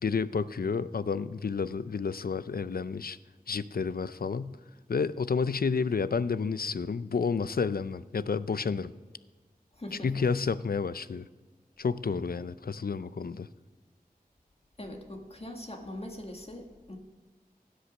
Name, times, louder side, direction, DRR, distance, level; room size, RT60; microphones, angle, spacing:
voice 1, 0.0-3.2 3.5-4.6 4.9-8.9 10.0-11.3 11.8-13.5, left 5 dB, 75° left, 16 dB, 0.5 m, -30 dB
voice 2, 9.7-10.2 14.8-17.0, left 1 dB, 40° left, 2 dB, 1.8 m, -42 dB
16.0 x 8.3 x 6.4 m, 1.3 s
wide cardioid pair, 60°, 16 cm